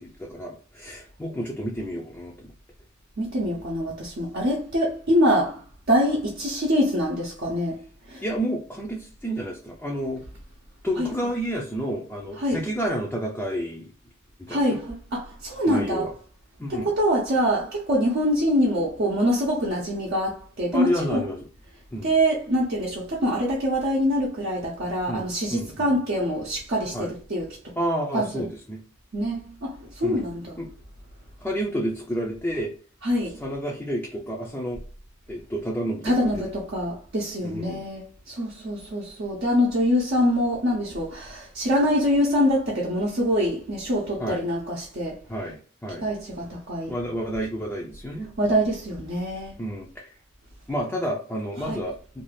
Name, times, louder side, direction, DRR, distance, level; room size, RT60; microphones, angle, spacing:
voice 1, 0.0-2.5 8.2-10.2 10.8-13.9 14.4-14.8 15.7-16.1 16.6-16.9 20.7-21.5 21.9-22.1 25.1-26.0 26.9-27.1 27.8-28.8 30.0-30.3 30.6-30.7 31.4-32.7 33.4-34.8 35.3-36.4 37.4-37.8 44.2-44.4 45.3-46.1 46.9-48.3 49.6-50.1 50.7-52.2, equal, 10° left, 0.5 m, -30 dB
voice 2, 3.2-5.6 5.9-7.8 8.1-8.2 11.0-11.1 12.4-12.6 14.5-16.1 16.7-21.2 22.0-27.5 28.1-28.5 29.1-30.6 33.0-33.4 36.0-45.2 46.0-46.9 48.4-49.5 51.6-51.8, equal, 55° right, 0.7 m, -24 dB
2.6 x 2.3 x 3.2 m
head